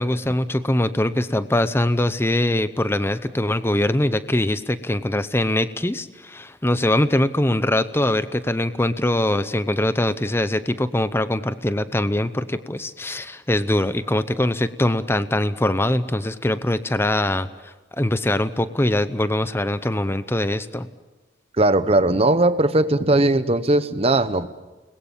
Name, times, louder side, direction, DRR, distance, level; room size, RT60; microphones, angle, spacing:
voice 1, 0.0-20.9, left 1 dB, 15° left, 12 dB, 0.8 m, -22 dB
voice 2, 21.6-24.5, right 2 dB, 35° right, 12 dB, 1.0 m, -18 dB
29.5 x 21.0 x 7.4 m, 1.2 s
head